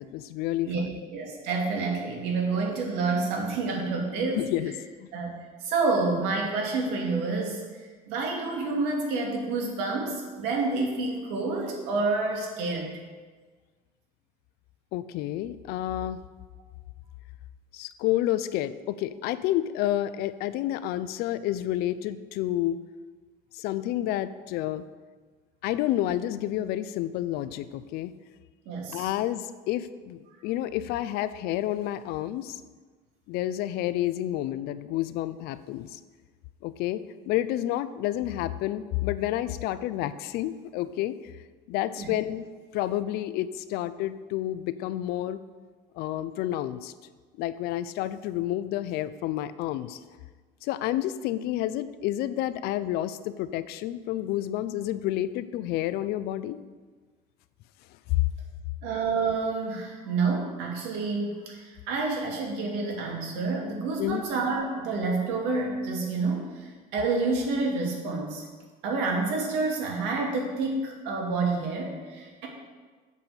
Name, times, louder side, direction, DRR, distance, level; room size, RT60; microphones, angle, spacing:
voice 1, 0.0-1.0 4.4-4.7 14.9-16.2 17.7-22.8 23.5-24.8 25.6-28.1 28.9-32.5 33.3-36.0 36.6-41.1 41.7-42.5 42.7-45.4 46.0-46.9 47.4-50.0 50.6-56.6 64.0-64.2, left 13 dB, 70° left, 14 dB, 0.6 m, -30 dB
voice 2, 1.1-4.5 5.1-5.3 5.6-7.6 8.1-12.9 28.7-29.1 42.0-42.1 58.8-66.5 66.9-68.4 68.8-72.5, right 3 dB, 85° right, -1 dB, 2.6 m, -28 dB
8.3 x 7.3 x 6.8 m, 1.4 s
cardioid pair, 155°, 17 cm